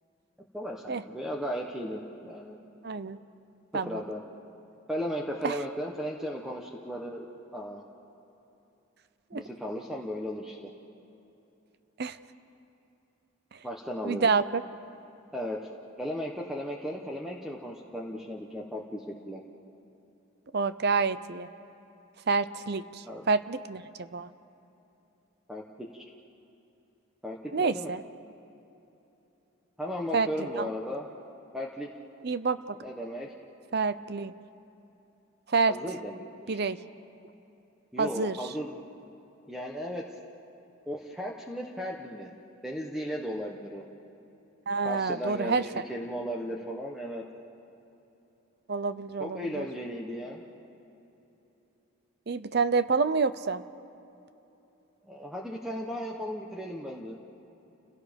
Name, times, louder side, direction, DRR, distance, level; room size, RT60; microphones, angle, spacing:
voice 1, 0.5-2.6 3.8-4.2 4.9-7.3 7.5-7.8 9.3-10.7 13.6-14.3 15.3-15.6 16.0-19.4 23.0-23.3 25.5-26.0 27.2-27.9 28.2-28.3 29.8-31.1 31.5-31.9 32.8-33.3 35.7-36.6 37.9-38.8 39.5-40.0 40.9-42.3 42.6-43.8 44.8-47.2 49.2-50.4 55.0-57.2, equal, ahead, -1 dB, 1.1 m, -36 dB
voice 2, 2.8-3.2 3.7-4.0 5.4-5.6 9.3-9.4 12.0-12.2 13.5-13.6 14.0-14.6 20.5-21.5 22.3-24.3 27.5-28.0 30.1-30.3 30.5-30.7 32.2-32.8 33.7-34.3 35.5-35.7 36.5-36.8 38.0-38.4 44.7-45.7 48.7-49.7 52.3-53.6, right 4 dB, 50° right, 14 dB, 0.6 m, -28 dB
30.0 x 17.0 x 5.3 m, 3.0 s
head